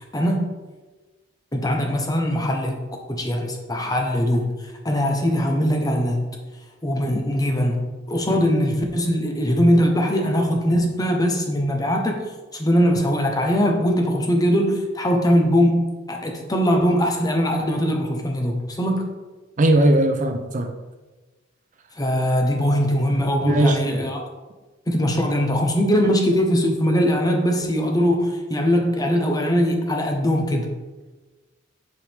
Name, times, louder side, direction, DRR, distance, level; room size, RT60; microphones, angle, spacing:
voice 1, 0.1-0.5 1.5-2.8 3.1-4.5 4.8-6.4 6.8-19.2 22.0-24.2 24.9-30.8, equal, 20° left, 2 dB, 0.9 m, -21 dB
voice 2, 19.6-20.7 23.4-24.0 26.0-26.1, right 1 dB, 40° right, 6 dB, 0.5 m, -19 dB
7.5 x 4.8 x 3.5 m, 1.2 s
head